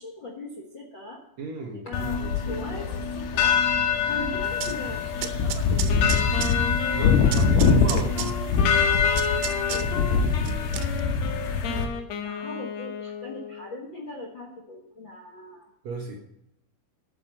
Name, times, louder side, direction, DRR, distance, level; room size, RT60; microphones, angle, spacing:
voice 1, 0.0-1.2 1.7-3.6 4.0-6.3 7.2-7.9 9.1-10.3 11.0-11.9 12.2-15.7 16.1-16.2, left 1 dB, 55° left, -1 dB, 1.3 m, -40 dB
voice 2, 1.4-2.6 6.9-8.3 10.4-10.8 15.8-16.2, right 3 dB, 60° right, 2 dB, 1.9 m, -36 dB
sound 1, 1.9-11.9, left 5 dB, 90° left, 3.1 m, -23 dB
sound 2, 4.4-11.0, right 11 dB, 85° right, 2.7 m, -37 dB
Wind instrument woodwind instrument, 5.9-13.8, left 6 dB, 70° left, 1.6 m, -34 dB
9.5 x 7.4 x 6.3 m, 0.83 s
omnidirectional pair, 4.3 m